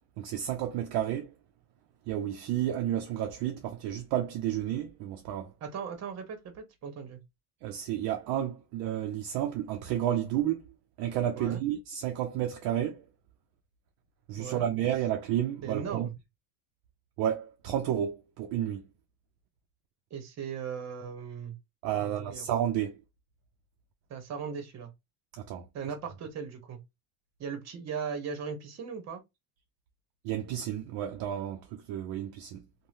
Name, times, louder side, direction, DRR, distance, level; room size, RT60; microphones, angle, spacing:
voice 1, 0.2-1.3 2.1-5.5 7.6-10.6 11.0-13.0 14.3-16.1 17.2-18.9 21.8-23.0 25.3-25.7 30.2-32.7, right 11 dB, 55° right, 0.5 m, -31 dB
voice 2, 5.6-7.2 11.4-11.6 14.4-14.7 15.6-16.1 20.1-21.6 22.0-22.5 24.1-24.9 25.7-26.8 27.4-29.2, right 6 dB, 40° right, 0.9 m, -38 dB
2.6 x 2.2 x 3.3 m
cardioid pair, 135°, 43 cm